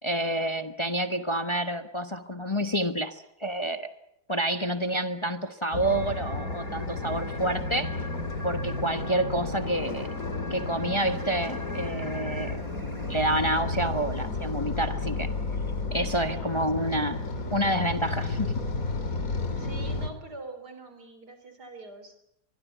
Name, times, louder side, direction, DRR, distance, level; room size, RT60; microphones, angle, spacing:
voice 1, 0.0-3.9 4.3-8.0 8.4-10.1 10.5-12.6 13.1-15.3 15.9-17.2 17.5-18.6, right 1 dB, 20° left, 8 dB, 1.0 m, -28 dB
sound 1, 5.7-20.1, left 3 dB, 60° left, 3.1 m, -32 dB
sound 2, 5.8-13.4, left 1 dB, 10° right, 4.4 m, -45 dB
voice 2, 16.0-16.7 17.0-17.3 19.4-22.2, right 2 dB, 85° right, 8 dB, 4.2 m, -45 dB
24.5 x 21.5 x 8.2 m, 0.80 s
omnidirectional pair, 1.7 m